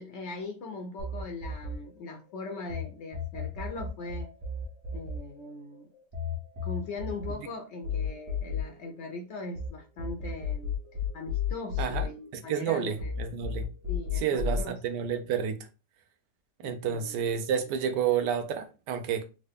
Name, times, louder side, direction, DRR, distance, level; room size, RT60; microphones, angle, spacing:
voice 1, 0.0-4.3 4.9-5.9 6.6-10.7 11.1-13.1 13.9-14.8 16.6-17.2, left 3 dB, 80° left, 0.6 m, -40 dB
sound 1, 1.0-2.8 3.1-9.7 10.0-12.7 13.0-14.6, left 5 dB, 45° right, 1.0 m, -34 dB
voice 2, 12.3-13.7 14.1-15.7 16.6-19.2, right 8 dB, 80° right, 1.2 m, -30 dB
3.7 x 2.1 x 3.4 m
omnidirectional pair, 1.9 m